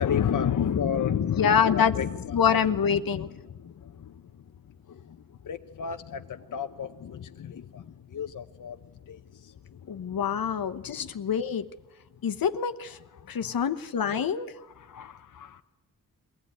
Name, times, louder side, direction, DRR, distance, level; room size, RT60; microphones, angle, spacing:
voice 1, 0.0-4.2 4.9-5.2 5.4-8.8 9.1-10.2 10.8-11.1 13.2-13.7 14.1-14.2 14.8-15.6, left 8 dB, 65° left, 7 dB, 0.7 m, -32 dB
voice 2, 1.2-1.9 2.3-3.3 9.9-11.6 12.2-13.0 13.3-14.5, left 7 dB, 85° left, 9 dB, 1.0 m, -26 dB
22.5 x 17.5 x 9.5 m, 1.1 s
wide cardioid pair, 150°, 34 cm